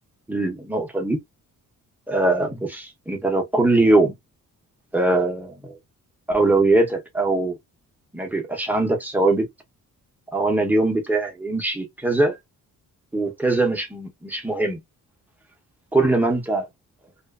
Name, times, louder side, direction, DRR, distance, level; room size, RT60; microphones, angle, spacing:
voice 1, 0.3-1.2 2.1-4.1 4.9-5.7 6.3-7.5 8.1-9.5 10.3-12.4 13.1-14.8 15.9-16.6, right 2 dB, 5° right, 0.7 m, -21 dB
2.4 x 2.4 x 2.3 m
wide cardioid pair, 145°, 33 cm